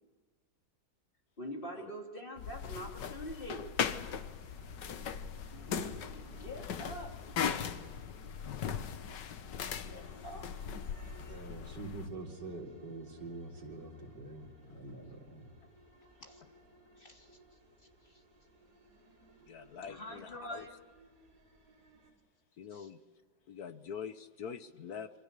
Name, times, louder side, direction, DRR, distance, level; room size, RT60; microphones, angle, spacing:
voice 1, 1.4-3.7 5.5-6.0 6.4-7.7 8.7-8.8 9.8-10.5 16.2-16.4 17.0-17.4 18.0-18.2 19.9-20.7 22.7-22.9, equal, 30° left, 1 dB, 3.1 m, -45 dB
sound 1, 2.4-12.1, left 7 dB, 85° left, 1.7 m, -39 dB
sound 2, 4.1-22.1, right 1 dB, 65° right, 6.1 m, -59 dB
voice 2, 10.9-15.5, right 2 dB, 85° right, 0 dB, 4.2 m, -45 dB
voice 3, 19.5-20.7 22.6-23.0 23.5-25.1, left 7 dB, 65° left, 11 dB, 1.5 m, -44 dB
27.5 x 26.0 x 6.8 m, 1.5 s
omnidirectional pair, 1.8 m